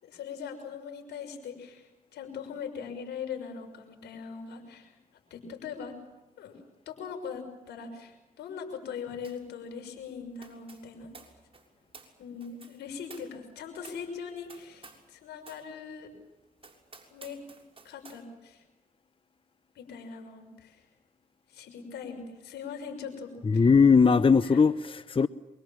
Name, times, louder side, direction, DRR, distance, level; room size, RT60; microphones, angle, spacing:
voice 1, 0.0-4.9 5.3-5.9 6.4-11.1 12.2-16.1 17.1-17.4 17.8-18.6 19.7-20.9 21.5-23.7 24.4-24.6, left 6 dB, 85° left, 6.4 m, -41 dB
sound 1, 9.2-9.5 9.8-15.1 15.4-15.7 16.1-16.2 16.6-18.2, right 3 dB, 35° right, 6.6 m, -53 dB
voice 2, 23.4-25.3, left 5 dB, 30° left, 0.8 m, -20 dB
26.5 x 24.0 x 7.5 m
supercardioid pair, 55°, 17 cm